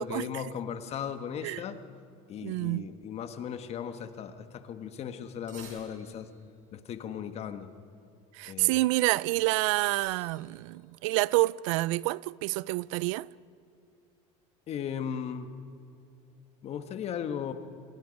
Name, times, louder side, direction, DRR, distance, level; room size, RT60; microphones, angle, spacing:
voice 1, 0.0-1.8 2.3-6.3 6.7-7.7 8.5-8.8 14.7-15.5 16.6-17.5, left 8 dB, 40° left, 1.4 m, -37 dB
voice 2, 2.4-2.9 8.3-13.3, right 20 dB, 90° right, 0.4 m, -28 dB
sound 1, 5.5-6.4 9.8-10.7, right 5 dB, 50° right, 6.4 m, -52 dB
27.5 x 21.0 x 5.3 m
cardioid pair, 135°, 16 cm